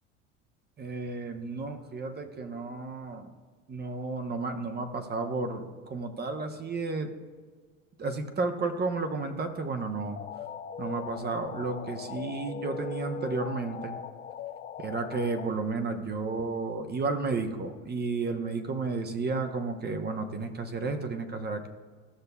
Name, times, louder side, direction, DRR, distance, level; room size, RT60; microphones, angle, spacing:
voice 1, 0.8-3.3 3.7-7.1 8.0-10.2 10.8-14.1 14.8-21.7, right 3 dB, 25° right, 6 dB, 1.0 m, -32 dB
sound 1, 10.1-15.5, left 7 dB, 25° left, 0.4 m, -39 dB
15.5 x 6.6 x 2.3 m, 1.5 s
hypercardioid pair, 80°, 38 cm